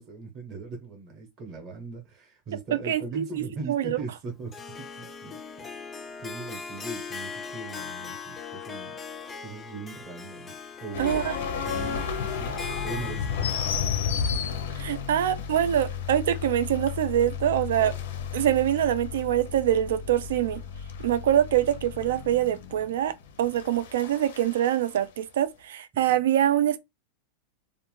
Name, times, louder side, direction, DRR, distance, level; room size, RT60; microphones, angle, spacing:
voice 1, 0.0-5.9 6.2-9.0 9.4-10.5 10.8-11.2 11.6-14.0 25.9-26.0, right 3 dB, 25° right, 0.8 m, -40 dB
voice 2, 2.7-4.0 11.0-11.4 14.8-17.9 18.3-20.6 21.0-26.8, right 11 dB, 90° right, 0.3 m, -24 dB
Harp, 4.5-15.7, left 5 dB, 10° left, 0.3 m, -40 dB
sound 1, 10.9-24.8, left 7 dB, 85° left, 0.5 m, -33 dB
2.5 x 2.1 x 3.1 m
supercardioid pair, 175°, 0 cm